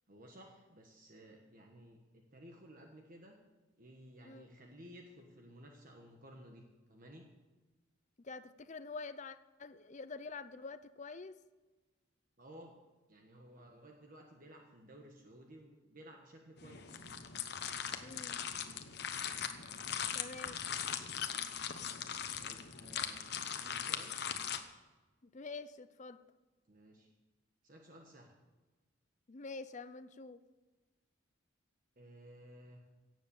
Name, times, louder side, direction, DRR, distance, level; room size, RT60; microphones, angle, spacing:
voice 1, 0.1-3.4 3.8-6.6 6.9-7.3 12.4-12.7 13.1-17.0 22.4-23.2 23.5-24.2 26.7-27.1 27.6-28.3 32.0-32.8, right 1 dB, 45° right, 2 dB, 1.4 m, -56 dB
voice 2, 8.2-11.4 18.0-18.4 20.1-20.6 25.2-26.2 29.3-30.4, left 4 dB, 35° left, 13 dB, 0.6 m, -47 dB
sound 1, 16.6-24.6, left 8 dB, 55° left, 1.0 m, -40 dB
17.0 x 7.7 x 7.1 m, 1.2 s
head